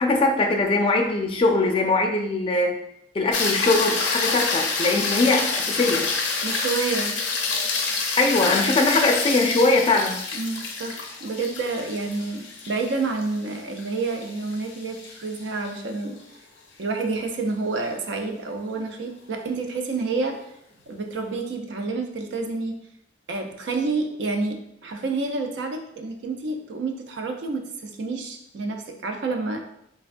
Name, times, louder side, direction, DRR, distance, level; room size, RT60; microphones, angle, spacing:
voice 1, 0.0-2.7 3.1-6.1 8.2-10.2, left 2 dB, 30° left, 2 dB, 0.3 m, -21 dB
sound 1, 3.3-15.7 20.2-20.3, left 4 dB, 90° left, 0.5 m, -27 dB
voice 2, 6.4-7.2 10.3-16.2 16.8-20.5 20.9-22.8 23.3-29.6, right 3 dB, 75° right, 4 dB, 0.4 m, -29 dB
3.3 x 2.2 x 2.5 m, 0.75 s
head